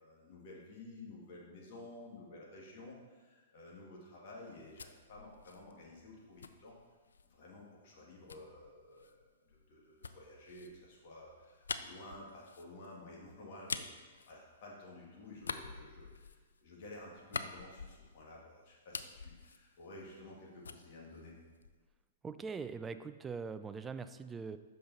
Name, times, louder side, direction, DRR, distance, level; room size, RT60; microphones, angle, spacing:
voice 1, 0.0-6.7 7.3-21.4, left 2 dB, 50° left, -3 dB, 2.1 m, -52 dB
sound 1, 4.4-7.4 8.3-15.0 15.3-18.4 18.7-20.4 20.6-22.0, left 5 dB, 80° left, 0.4 m, -46 dB
voice 2, 22.2-24.6, right 5 dB, 15° right, 11 dB, 0.3 m, -42 dB
6.7 x 5.3 x 4.1 m, 1.4 s
hypercardioid pair, 115°, 0 cm